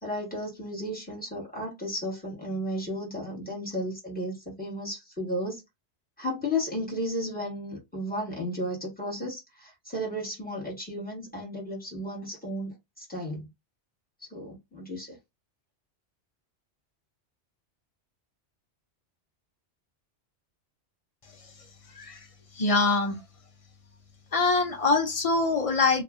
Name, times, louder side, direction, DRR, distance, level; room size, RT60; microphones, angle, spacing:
voice 1, 0.0-5.6 6.2-13.5 14.3-15.2, equal, 10° left, 1.3 m, -34 dB
voice 2, 21.9-22.3 22.5-23.2 24.3-26.0, left 3 dB, 50° left, 0.4 m, -24 dB
2.7 x 2.4 x 2.4 m
omnidirectional pair, 1.2 m